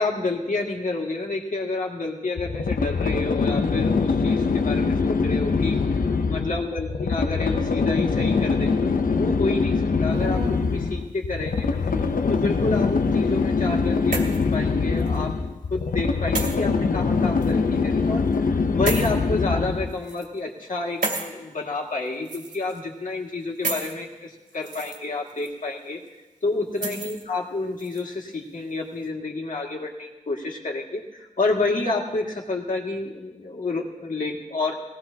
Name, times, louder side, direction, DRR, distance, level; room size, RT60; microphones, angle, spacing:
voice 1, 0.0-5.8 6.3-10.4 10.7-11.8 12.3-26.0 26.4-34.7, left 2 dB, 70° left, 0 dB, 2.2 m, -29 dB
sound 1, 2.4-20.0, left 4 dB, 90° left, 0.8 m, -23 dB
sound 2, 10.1-10.7 11.6-12.3 13.6-14.5 15.0-15.1 16.3-16.6 17.4-17.5 18.8-19.1 19.9-20.3 21.0-21.3 22.2-22.8 23.6-23.9 24.5-25.0 25.4-25.5 26.7-27.2 27.8-28.0, right 3 dB, 80° right, 2.6 m, -31 dB
20.0 x 17.5 x 2.9 m, 1.1 s
wide cardioid pair, 90°, 14 cm